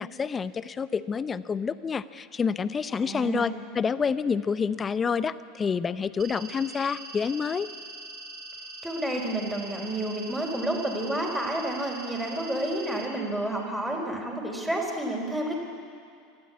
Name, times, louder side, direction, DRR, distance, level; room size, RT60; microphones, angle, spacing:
voice 1, 0.0-7.7, left 6 dB, 25° left, 15 dB, 0.8 m, -28 dB
voice 2, 2.9-3.6 8.8-15.6, right 1 dB, ahead, -2 dB, 4.1 m, -30 dB
sound 1, 6.2-13.0, right 2 dB, 35° right, 4.6 m, -42 dB
25.0 x 14.0 x 8.5 m, 2.4 s
hypercardioid pair, 80°, 0 cm